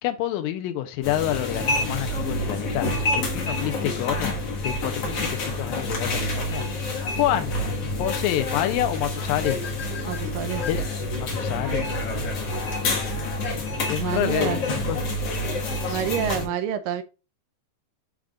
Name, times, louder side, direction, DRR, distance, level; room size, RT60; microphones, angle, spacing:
voice 1, 0.0-4.4 4.6-6.7 7.2-9.6 10.7-10.9 11.2-12.3 13.9-15.0 15.9-16.1, left 13 dB, 85° left, 2.3 m, -28 dB
sound 1, 1.0-16.5, left 2 dB, 50° left, 2.2 m, -28 dB
voice 2, 10.1-10.6 14.0-14.6 15.9-17.0, right 9 dB, 80° right, 2.2 m, -28 dB
11.0 x 3.7 x 2.4 m
omnidirectional pair, 4.1 m